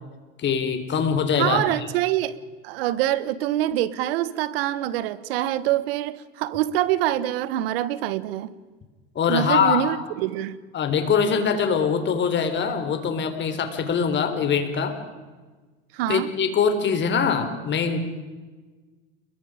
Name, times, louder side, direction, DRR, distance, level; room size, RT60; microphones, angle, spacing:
voice 1, 0.4-1.6 9.1-9.9 10.7-15.0 16.1-18.0, left 6 dB, 40° left, 4.0 m, -23 dB
voice 2, 1.4-2.3 2.6-8.5 9.3-10.6 15.9-16.3, right 13 dB, 80° right, 1.4 m, -25 dB
29.0 x 22.0 x 5.1 m
supercardioid pair, 110°, 29 cm